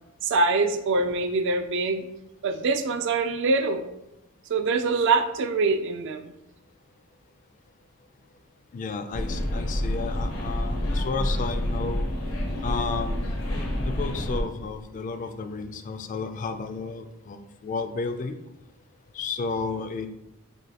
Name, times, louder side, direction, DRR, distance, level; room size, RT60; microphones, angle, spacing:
voice 1, 0.2-2.1 2.4-3.9 4.5-6.3, right 3 dB, 60° right, 7 dB, 0.4 m, -24 dB
voice 2, 8.7-12.1 12.6-13.2 13.8-18.4 19.1-20.1, left 4 dB, 40° left, 8 dB, 0.3 m, -32 dB
sound 1, 9.1-14.4, left 1 dB, 90° left, 1.0 m, -28 dB
6.2 x 2.2 x 2.8 m, 0.88 s
head